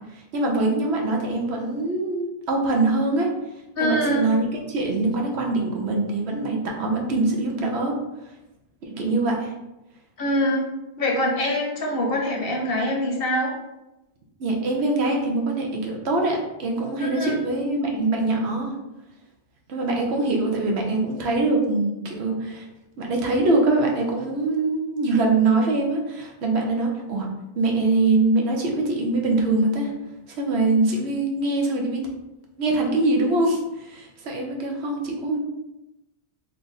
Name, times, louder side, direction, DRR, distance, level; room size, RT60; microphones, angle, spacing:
voice 1, 0.1-3.3 3.8-7.9 8.8-9.5 14.4-18.7 19.7-22.7 23.0-27.3 27.6-29.9 30.3-32.0 32.6-35.4, right 2 dB, 90° right, 1 dB, 1.0 m, -23 dB
voice 2, 3.8-4.2 10.2-10.7 11.0-13.5 17.0-17.4, equal, 65° left, 0 dB, 1.0 m, -24 dB
3.5 x 2.4 x 4.0 m, 0.95 s
omnidirectional pair, 1.1 m